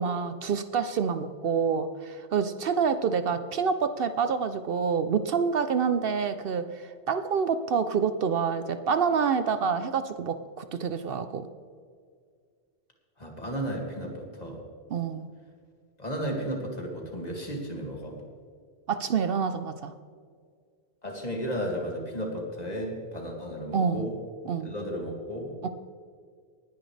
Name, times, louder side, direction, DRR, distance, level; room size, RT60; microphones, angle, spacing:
voice 1, 0.0-11.5 14.9-15.3 18.9-19.9 23.7-24.1 24.5-24.7 25.6-25.7, right 6 dB, 65° right, 10 dB, 0.8 m, -27 dB
voice 2, 13.2-14.6 16.0-18.2 21.0-24.2 24.6-25.5, equal, 40° left, 0 dB, 2.4 m, -34 dB
19.0 x 10.5 x 3.3 m, 2.1 s
omnidirectional pair, 1.1 m